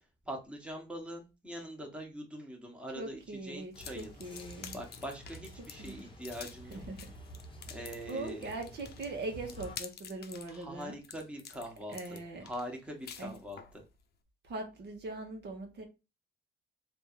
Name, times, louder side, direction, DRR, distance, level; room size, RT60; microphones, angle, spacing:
voice 1, 0.2-4.1 4.7-6.8 7.7-8.5 10.5-13.8, equal, 5° right, 1.2 m, -43 dB
voice 2, 2.9-4.8 5.8-6.0 6.7-7.1 7.7-7.8 8.1-11.0 11.9-12.5 13.2-13.4 14.4-15.8, right 2 dB, 55° right, 1.1 m, -41 dB
sound 1, 3.7-13.8, left 7 dB, 55° left, 0.6 m, -49 dB
sound 2, 3.7-9.8, equal, 25° left, 0.9 m, -50 dB
3.4 x 2.6 x 4.3 m
cardioid pair, 90°, 20 cm